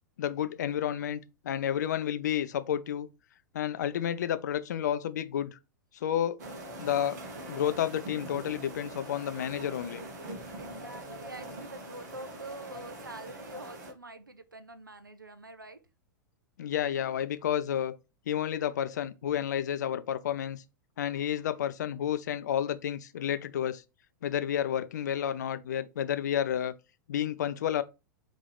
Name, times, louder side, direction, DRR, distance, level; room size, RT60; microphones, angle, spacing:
voice 1, 0.2-3.1 3.5-5.6 5.9-6.4 6.8-7.2 7.5-10.0 16.6-18.0 18.3-20.6 21.0-23.8 24.2-26.7 27.1-27.8, left 10 dB, 60° left, 0.4 m, -31 dB
sound 1, 6.4-13.9, right 1 dB, 55° right, 1.1 m, -43 dB
voice 2, 10.5-15.8, right 2 dB, 85° right, 0.4 m, -45 dB
3.8 x 2.7 x 3.4 m
figure-of-eight pair, 95°, 11 cm